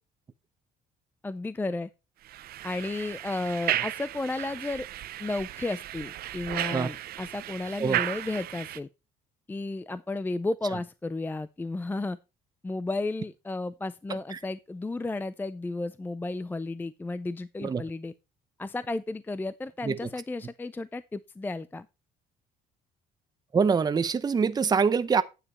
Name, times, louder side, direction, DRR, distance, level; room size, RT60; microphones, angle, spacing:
voice 1, 1.2-1.9 2.6-4.9 5.2-8.9 9.5-12.2 12.6-18.1 18.6-21.9, left 2 dB, 10° left, 0.4 m, -33 dB
sound 1, 2.3-8.8, right 13 dB, 65° right, 0.7 m, -34 dB
voice 2, 23.5-25.2, right 5 dB, 25° right, 0.7 m, -24 dB
9.8 x 7.3 x 4.2 m
cardioid pair, 110°, 17 cm